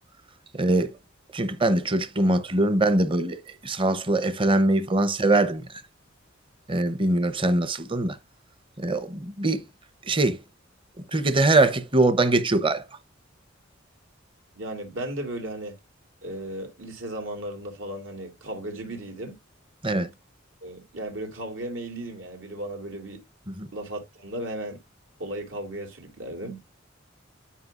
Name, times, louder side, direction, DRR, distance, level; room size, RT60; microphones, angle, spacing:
voice 1, 0.5-1.0 1.3-5.7 6.7-8.2 8.8-9.6 10.0-10.4 11.1-12.8 19.8-20.1 23.5-23.7, right 2 dB, 25° right, 0.8 m, -22 dB
voice 2, 14.5-15.8 16.2-19.4 20.6-23.2 23.7-24.8 25.2-26.6, right 1 dB, 80° right, 2.8 m, -35 dB
11.0 x 4.8 x 2.5 m
head